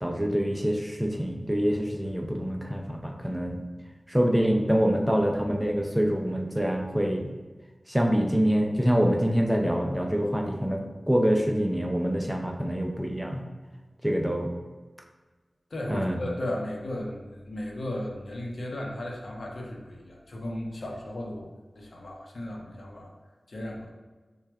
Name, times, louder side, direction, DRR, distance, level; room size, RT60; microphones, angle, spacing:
voice 1, 0.0-3.6 4.1-7.3 7.9-13.4 14.0-14.5 15.9-16.2, equal, 5° right, 2 dB, 0.6 m, -25 dB
voice 2, 15.7-23.1 23.5-23.9, left 1 dB, 75° left, -1 dB, 0.8 m, -35 dB
6.1 x 2.4 x 3.4 m, 1.3 s
wide cardioid pair, 50°, 0 cm